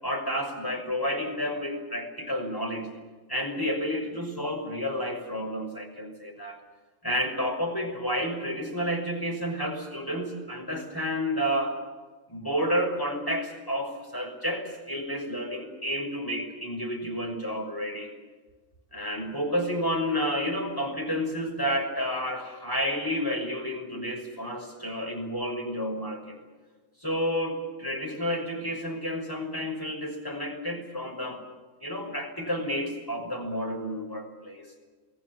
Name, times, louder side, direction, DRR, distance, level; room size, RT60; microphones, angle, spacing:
voice 1, 0.0-2.9 3.3-6.6 7.0-11.8 12.3-18.1 18.9-26.4 27.0-31.4 31.8-34.7, equal, 15° left, 2 dB, 6.0 m, -30 dB
28.0 x 20.5 x 7.3 m, 1.4 s
omnidirectional pair, 1.3 m